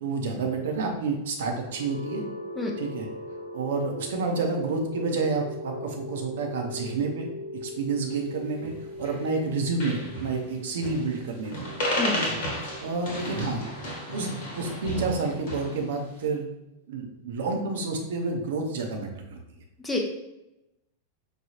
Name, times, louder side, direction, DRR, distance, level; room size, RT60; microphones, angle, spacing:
voice 1, 0.0-2.2 2.8-3.1 3.5-7.3 7.6-8.7 9.0-11.7 12.1-12.3 12.8-13.6 14.1-16.4 16.9-19.4, right 4 dB, 60° right, 2 dB, 0.6 m, -29 dB
sound 1, 1.6-15.4, left 1 dB, 85° left, 0.4 m, -40 dB
voice 2, 2.6-2.7 12.0-12.1 19.8-20.0, left 3 dB, 10° left, 1 dB, 0.6 m, -27 dB
sound 2, 8.6-9.2 9.5-9.6 9.8-10.4 10.8-11.2 11.4-15.8, equal, 50° left, 1.1 m, -33 dB
4.9 x 2.3 x 2.9 m, 0.91 s
figure-of-eight pair, 90°, 0 cm